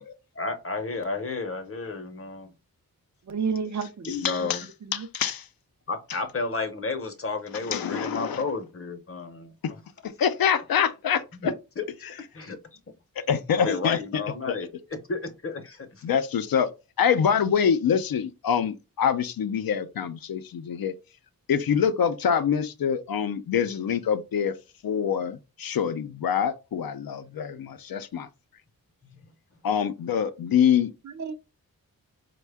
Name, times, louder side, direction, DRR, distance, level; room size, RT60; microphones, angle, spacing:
voice 1, 0.3-2.5 4.1-4.7 5.9-9.8 11.4-11.8 12.3-12.8 13.5-16.0 29.1-29.2, left 3 dB, 40° left, 0.7 m, -32 dB
voice 2, 3.2-4.5 4.8-5.1 31.0-31.3, right 5 dB, 55° right, 0.5 m, -31 dB
voice 3, 4.2-4.6 5.1-5.4 7.7-8.4 10.2-11.5 13.3-14.0 14.5-14.6 16.0-16.7 17.0-20.9 21.5-24.5 24.8-28.3 29.6-30.9, left 7 dB, 75° left, 0.5 m, -25 dB
4.3 x 2.2 x 3.4 m
wide cardioid pair, 110°, 36 cm